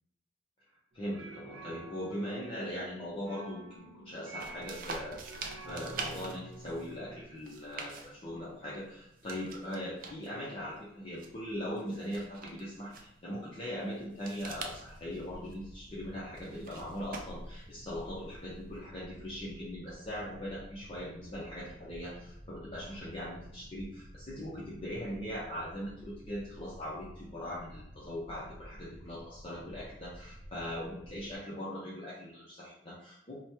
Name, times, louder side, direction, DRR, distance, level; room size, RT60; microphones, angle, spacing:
voice 1, 0.9-33.4, equal, 35° left, -8 dB, 0.8 m, -40 dB
sound 1, 0.9-7.2, right 2 dB, 90° right, 0.8 m, -49 dB
sound 2, 4.4-18.8, right 4 dB, 50° right, 0.5 m, -47 dB
sound 3, 14.4-31.4, equal, 15° right, 1.3 m, -52 dB
3.2 x 2.2 x 4.2 m, 0.79 s
head